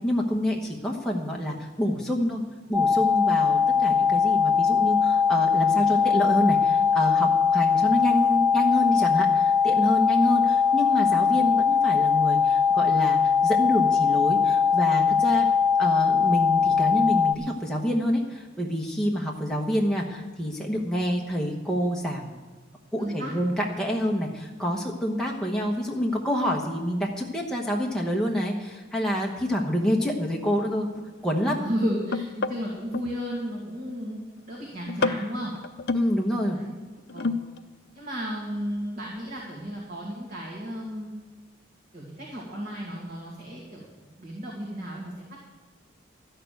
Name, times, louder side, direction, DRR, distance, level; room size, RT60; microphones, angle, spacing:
voice 1, 0.0-2.4 2.7-15.5 15.8-22.2 22.9-30.9 31.2-31.6 35.9-36.6, equal, 5° left, -2 dB, 1.1 m, -27 dB
sound 1, 2.7-17.3, left 6 dB, 15° right, 0.5 m, -21 dB
voice 2, 23.0-23.3 31.6-34.2 34.5-35.5 36.5-36.8 37.1-37.4 37.9-41.1 41.9-45.4, equal, 45° right, -4 dB, 2.3 m, -33 dB
sound 2, 29.6-29.7 30.2-33.2 33.6-34.0 34.4-34.6 34.9-36.1 37.0-37.6 38.0-38.1, left 3 dB, 55° left, 0.6 m, -31 dB
12.5 x 6.8 x 9.3 m, 1.4 s
head